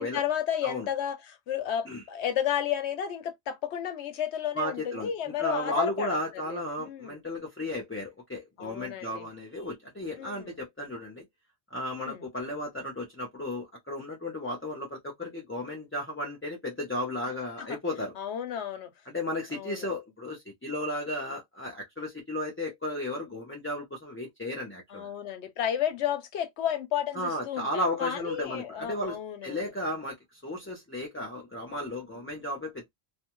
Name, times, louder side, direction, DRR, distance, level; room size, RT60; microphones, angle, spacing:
voice 1, 0.0-6.2 6.5-7.2 8.6-9.3 10.2-10.6 12.0-12.2 17.6-17.8 18.2-18.9 19.5-19.9 24.9-29.6, left 9 dB, 85° left, 0.9 m, -32 dB
voice 2, 4.6-11.2 11.7-18.1 19.1-25.1 27.1-32.9, left 1 dB, 15° left, 0.6 m, -34 dB
2.5 x 2.2 x 2.9 m
omnidirectional pair, 1.1 m